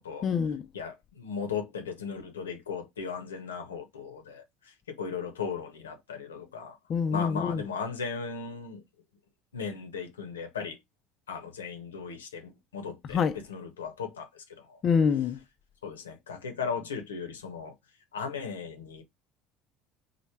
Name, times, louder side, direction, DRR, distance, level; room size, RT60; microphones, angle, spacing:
voice 1, 0.2-0.6 6.9-7.6 13.1-13.4 14.8-15.4, left 6 dB, 45° left, 0.3 m, -25 dB
voice 2, 0.7-6.8 7.1-8.8 9.5-10.8 11.3-14.8 15.8-17.7 18.1-19.0, left 6 dB, 85° left, 0.7 m, -37 dB
3.1 x 2.0 x 3.2 m
hypercardioid pair, 70°, 0 cm